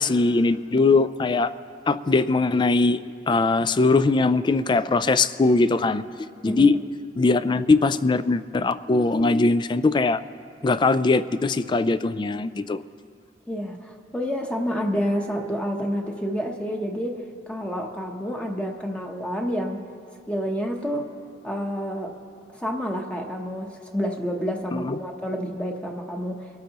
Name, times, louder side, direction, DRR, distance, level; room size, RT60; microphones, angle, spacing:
voice 1, 0.0-1.5 1.9-3.0 3.3-6.0 6.4-6.8 7.2-10.2 10.6-12.8 24.7-25.0, left 3 dB, 25° left, 14 dB, 0.3 m, -21 dB
voice 2, 13.5-19.9 20.3-21.1 21.4-22.1 22.5-26.5, equal, 5° left, 1 dB, 0.9 m, -29 dB
23.5 x 13.5 x 2.9 m, 2.3 s
head